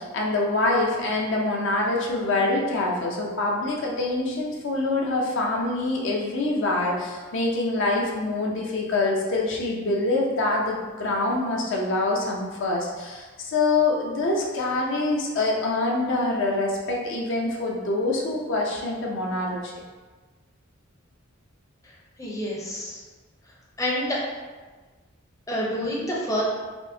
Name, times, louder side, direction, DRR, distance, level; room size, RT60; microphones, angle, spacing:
voice 1, 0.0-19.7, left 2 dB, 60° left, -2 dB, 0.5 m, -25 dB
voice 2, 21.8-23.0 23.8-24.2 25.5-26.4, equal, 15° left, -5 dB, 0.5 m, -28 dB
4.3 x 2.1 x 2.6 m, 1.3 s
head